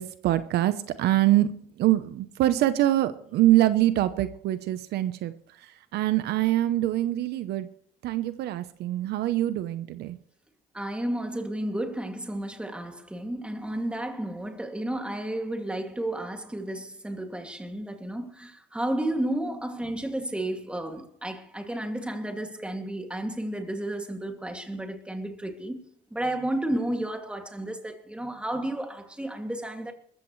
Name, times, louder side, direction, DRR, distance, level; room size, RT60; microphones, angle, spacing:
voice 1, 0.0-1.5 1.8-5.3 5.9-7.7 8.0-10.2, right 14 dB, 75° right, 0.9 m, -24 dB
voice 2, 10.7-25.8 26.1-29.9, right 1 dB, 5° right, 2.5 m, -32 dB
22.0 x 14.5 x 3.2 m
cardioid pair, 110°, 17 cm